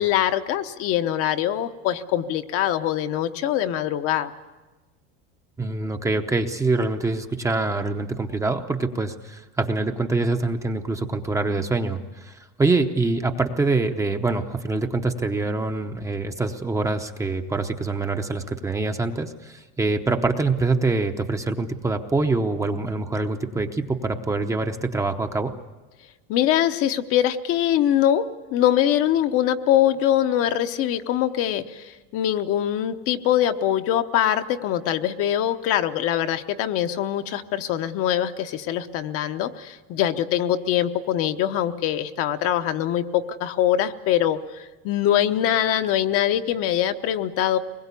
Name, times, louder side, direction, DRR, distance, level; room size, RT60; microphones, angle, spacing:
voice 1, 0.0-4.3 26.3-47.6, left 11 dB, 45° left, 8 dB, 1.0 m, -23 dB
voice 2, 5.6-25.5, right 3 dB, 10° right, 5 dB, 0.8 m, -25 dB
23.5 x 21.0 x 8.4 m, 1.2 s
cardioid pair, 155°, 31 cm